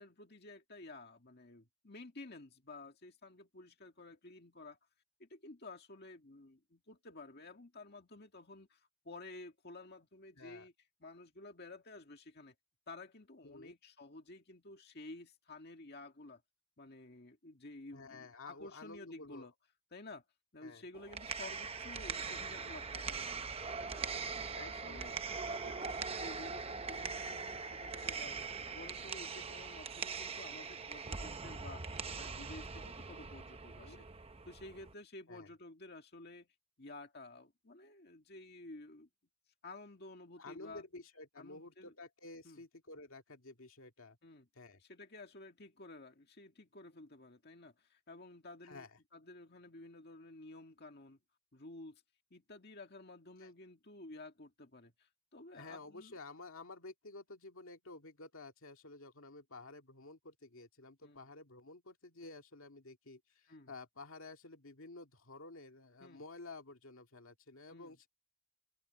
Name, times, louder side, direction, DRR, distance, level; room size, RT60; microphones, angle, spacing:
voice 1, 0.0-4.8 5.2-10.7 11.0-12.5 12.9-16.4 16.8-19.5 19.9-20.2 20.5-28.4 28.7-34.1 34.5-36.5 36.8-39.1 39.6-40.8 41.4-41.9 42.4-42.6 44.2-44.5 44.8-51.2 51.5-52.0 52.3-56.2 61.0-61.2 63.5-63.7 66.0-66.2 67.7-67.9, left 2 dB, 45° left, 2.0 m, -52 dB
voice 2, 10.4-10.7 13.4-13.7 17.9-19.5 20.6-20.8 24.6-25.1 33.8-34.0 35.3-35.5 40.4-44.2 44.5-44.8 48.6-48.9 53.4-53.5 55.5-68.1, left 3 dB, 65° left, 2.2 m, -52 dB
sound 1, 20.9-34.9, right 5 dB, 25° right, 0.8 m, -42 dB
head